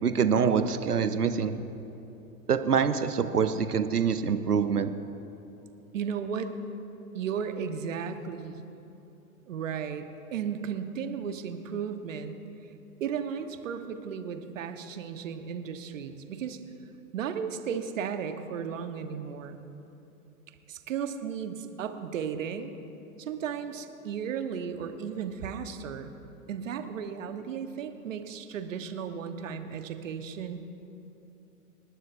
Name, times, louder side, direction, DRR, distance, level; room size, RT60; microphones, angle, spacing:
voice 1, 0.0-1.6 2.5-4.9, right 6 dB, 80° right, 10 dB, 0.9 m, -25 dB
voice 2, 5.9-6.6 7.1-8.6 9.5-12.4 13.0-16.6 17.1-19.6 20.7-22.8 23.2-26.2 26.5-30.6, right 7 dB, 55° right, 8 dB, 1.2 m, -35 dB
27.5 x 12.0 x 2.6 m, 2.9 s
figure-of-eight pair, 105°, 45 cm